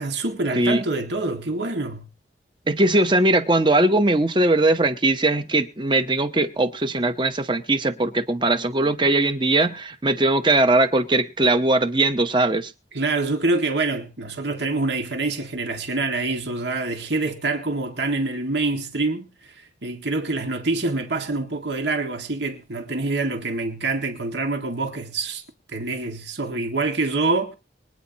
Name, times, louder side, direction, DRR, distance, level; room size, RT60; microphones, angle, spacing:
voice 1, 0.0-2.1 12.9-19.5 19.8-25.4 25.7-27.5, right 3 dB, 70° right, 2.0 m, -26 dB
voice 2, 2.7-12.7, right 2 dB, 25° right, 0.9 m, -20 dB
24.0 x 9.5 x 2.9 m
head